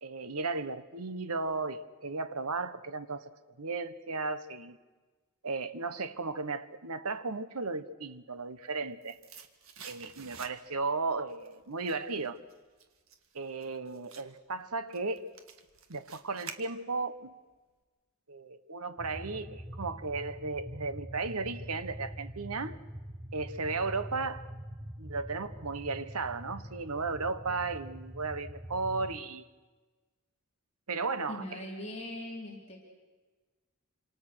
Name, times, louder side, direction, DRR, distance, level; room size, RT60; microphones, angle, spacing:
voice 1, 0.0-3.3 3.6-4.8 5.4-9.2 9.8-12.4 13.3-15.3 15.9-17.3 18.3-22.8 23.3-24.5 25.0-29.4 30.9-31.6, right 3 dB, 85° right, 1.2 m, -35 dB
sound 1, 8.5-10.9 11.3-17.2 17.5-17.6, right 6 dB, 65° right, 1.8 m, -50 dB
sound 2, 19.0-29.2, equal, 20° right, 1.2 m, -44 dB
voice 2, 31.3-32.8, left 1 dB, 30° left, 4.5 m, -40 dB
27.0 x 27.0 x 6.4 m
head